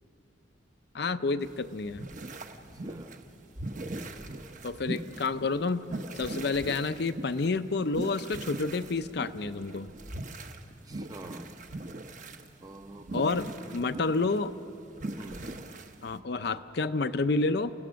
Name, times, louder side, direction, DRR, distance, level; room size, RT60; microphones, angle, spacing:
voice 1, 0.9-2.0 4.6-5.8 6.1-9.9 13.1-13.5 13.7-14.5 16.0-17.7, left 3 dB, 55° left, 0.6 m, -29 dB
sound 1, 1.4-16.2, right 2 dB, 40° right, 1.0 m, -41 dB
voice 2, 2.6-3.3 10.8-11.7 12.6-13.8 14.2-14.4 15.2-15.6, right 1 dB, 20° right, 0.7 m, -46 dB
29.5 x 17.0 x 6.3 m
head